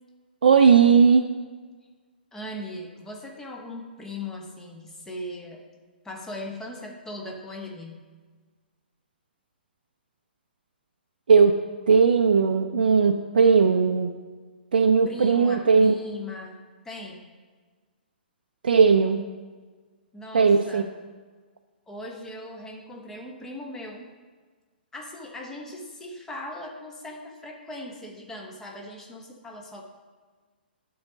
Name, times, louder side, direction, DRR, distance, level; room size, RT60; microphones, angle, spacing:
voice 1, 0.4-1.3 11.3-11.6 11.9-14.1 14.7-15.9 18.6-19.3 20.3-20.8, right 5 dB, 55° right, 5 dB, 0.4 m, -18 dB
voice 2, 2.3-5.6 6.0-8.0 14.8-17.2 20.1-20.9 21.9-24.1 24.9-29.8, left 1 dB, 10° left, 0 dB, 0.9 m, -39 dB
11.0 x 3.9 x 5.0 m, 1.4 s
figure-of-eight pair, 120°, 6 cm